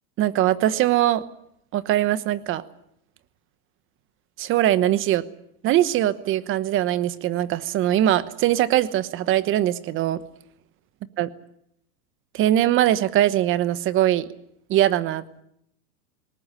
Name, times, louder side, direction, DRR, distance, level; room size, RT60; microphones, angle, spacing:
voice 1, 0.2-1.2 1.7-2.6 4.4-5.2 5.6-10.2 11.2-11.3 12.3-14.3 14.7-15.2, right 13 dB, 25° right, 15 dB, 1.1 m, -21 dB
20.0 x 19.5 x 9.5 m, 0.73 s
supercardioid pair, 145°, 46 cm